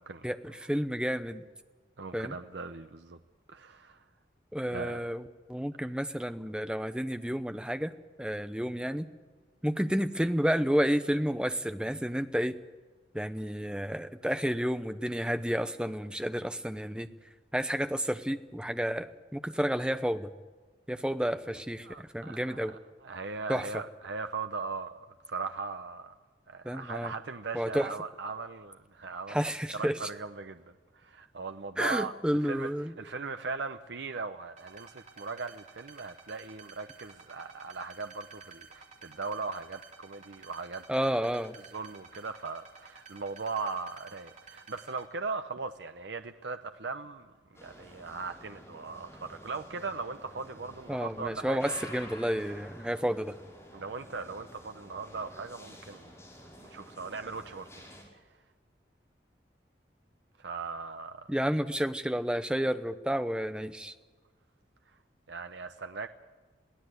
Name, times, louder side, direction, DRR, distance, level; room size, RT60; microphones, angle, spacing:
voice 1, 0.2-1.4 2.1-2.3 4.5-7.9 8.2-9.1 9.6-12.6 13.1-17.1 17.5-20.3 20.9-22.7 23.5-23.8 26.6-27.1 27.5-27.9 29.3-30.0 31.8-33.0 40.9-41.6 50.9-53.3 61.3-63.9, equal, 5° right, 9 dB, 0.9 m, -31 dB
voice 2, 2.0-3.2 3.5-4.0 4.7-5.1 21.8-26.1 26.5-29.5 29.7-30.6 30.9-32.1 32.4-32.7 33.0-40.8 41.7-47.3 47.6-51.8 53.7-56.1 56.7-57.7 60.4-61.3 65.3-66.1, right 4 dB, 75° right, 8 dB, 0.8 m, -39 dB
sound 1, 34.6-45.0, right 6 dB, 40° right, 3.5 m, -52 dB
sound 2, 47.5-58.0, equal, 15° left, 5.7 m, -50 dB
22.5 x 16.0 x 8.0 m, 1.4 s
head